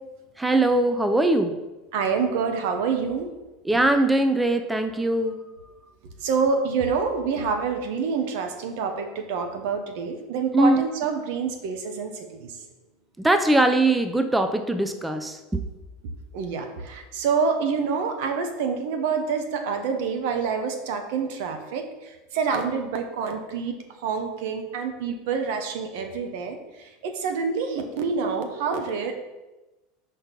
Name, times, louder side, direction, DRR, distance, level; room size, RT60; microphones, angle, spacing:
voice 1, 0.4-1.6 3.7-5.4 10.5-10.8 13.2-15.6, right 2 dB, 10° right, 8 dB, 0.5 m, -21 dB
voice 2, 1.9-3.3 6.0-12.6 16.3-29.2, right 5 dB, 70° right, 6 dB, 1.0 m, -27 dB
5.9 x 4.3 x 5.2 m, 1.1 s
supercardioid pair, 115°, 0 cm